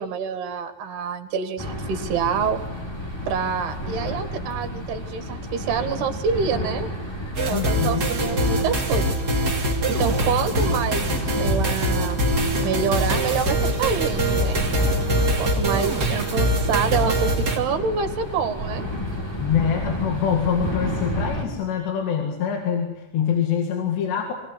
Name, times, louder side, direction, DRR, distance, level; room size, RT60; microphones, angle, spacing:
voice 1, 0.0-2.6 3.3-6.9 7.5-9.1 9.9-11.1 11.4-12.2 12.6-14.6 15.4-18.9, right 6 dB, 75° right, 7 dB, 3.9 m, -26 dB
sound 1, 1.6-21.4, equal, 5° left, 2.6 m, -31 dB
sound 2, 7.3-17.6, right 1 dB, 25° right, 2.9 m, -23 dB
voice 2, 7.5-8.1 15.4-15.6 19.4-24.3, left 8 dB, 85° left, 3 dB, 4.2 m, -25 dB
25.0 x 18.5 x 9.8 m, 1.0 s
omnidirectional pair, 4.8 m